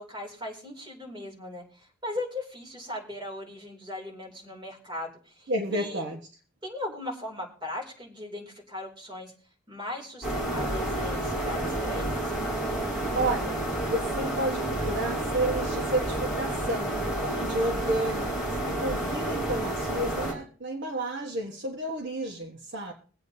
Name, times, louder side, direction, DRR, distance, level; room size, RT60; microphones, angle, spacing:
voice 1, 0.0-6.0 6.6-9.3 9.7-12.1, left 1 dB, 25° right, -1 dB, 2.9 m, -38 dB
voice 2, 5.5-6.2 13.1-13.6 13.9-22.9, right 1 dB, 60° right, 3 dB, 1.1 m, -31 dB
sound 1, 10.2-20.3, right 1 dB, ahead, 3.8 m, -30 dB
22.5 x 8.3 x 2.7 m, 0.41 s
head